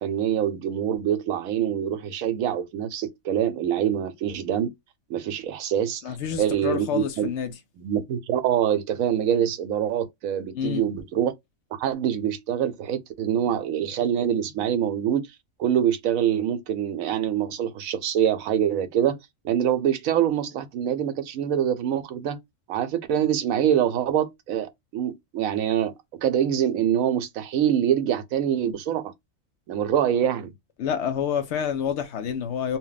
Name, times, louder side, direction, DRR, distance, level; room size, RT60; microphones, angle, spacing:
voice 1, 0.0-4.7 5.1-7.3 7.8-11.3 11.7-15.2 15.6-19.2 19.4-22.4 22.7-29.1 29.7-30.5, right 9 dB, 90° right, 1.0 m, -25 dB
voice 2, 6.0-7.5 10.5-10.8 30.8-32.8, left 8 dB, 65° left, 0.8 m, -28 dB
2.3 x 2.1 x 3.8 m
omnidirectional pair, 1.4 m